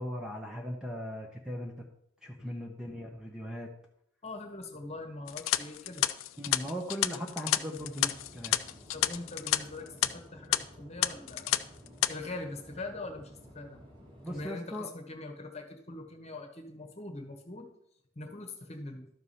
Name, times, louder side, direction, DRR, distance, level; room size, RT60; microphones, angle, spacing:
voice 1, 0.0-1.7 2.2-3.7 6.4-8.6 14.2-14.9, equal, 5° right, 0 dB, 0.9 m, -38 dB
voice 2, 4.2-6.1 8.9-11.6 12.1-13.8 14.3-17.7 18.1-19.1, left 2 dB, 30° left, 5 dB, 1.3 m, -42 dB
sound 1, 5.3-9.6 9.9-10.1 10.5-10.6 11.0-11.6 11.9-12.1, left 13 dB, 80° left, 0.5 m, -29 dB
sound 2, 7.7-14.5, equal, 25° right, 1.7 m, -53 dB
12.5 x 4.8 x 5.6 m, 0.73 s
head